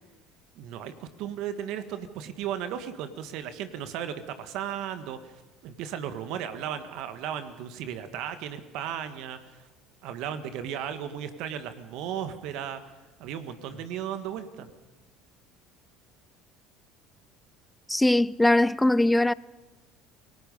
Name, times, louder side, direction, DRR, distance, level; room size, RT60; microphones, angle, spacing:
voice 1, 0.5-5.3 5.6-9.6 10.0-12.8 13.2-14.7, right 9 dB, 65° right, 1.6 m, -35 dB
voice 2, 17.9-19.3, left 1 dB, 10° left, 0.6 m, -21 dB
28.5 x 18.0 x 5.4 m
hypercardioid pair, 75°, 0 cm